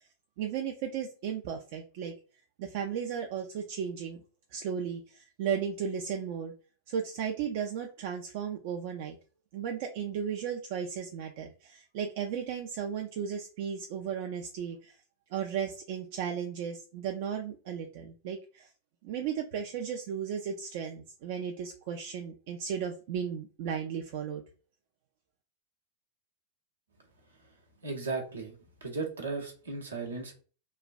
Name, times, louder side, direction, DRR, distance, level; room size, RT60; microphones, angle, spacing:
voice 1, 0.4-2.1 2.6-4.2 4.5-6.5 6.9-9.2 9.5-15.0 15.3-18.7 19.0-24.4, right 7 dB, 50° right, 3 dB, 0.4 m, -35 dB
voice 2, 27.8-28.5 28.8-30.4, right 4 dB, 70° right, 2 dB, 0.7 m, -36 dB
3.1 x 2.2 x 2.4 m, 0.37 s
figure-of-eight pair, 90°, 0 cm